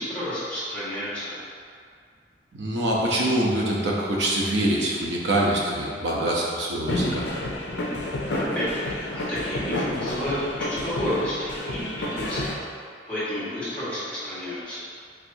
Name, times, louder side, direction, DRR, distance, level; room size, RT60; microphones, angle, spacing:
voice 1, 0.0-1.4 8.4-12.6 13.1-14.8, equal, 5° left, -13 dB, 1.4 m, -31 dB
voice 2, 2.5-7.3, right 1 dB, 70° right, -3 dB, 0.7 m, -24 dB
sound 1, 6.9-12.5, left 1 dB, 70° left, 0.5 m, -29 dB
4.5 x 3.3 x 2.6 m, 2.2 s
head